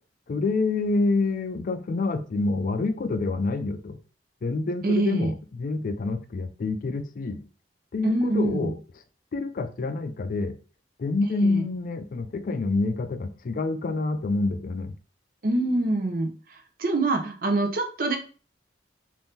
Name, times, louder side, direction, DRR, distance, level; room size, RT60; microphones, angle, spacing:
voice 1, 0.3-4.0 4.4-7.4 7.9-8.7 9.3-10.5 11.0-14.9, left 3 dB, 50° left, 9 dB, 0.4 m, -27 dB
voice 2, 4.8-5.3 8.0-8.7 11.4-11.6 15.4-18.2, right 2 dB, 55° right, 4 dB, 0.6 m, -25 dB
2.7 x 2.6 x 3.5 m, 0.37 s
head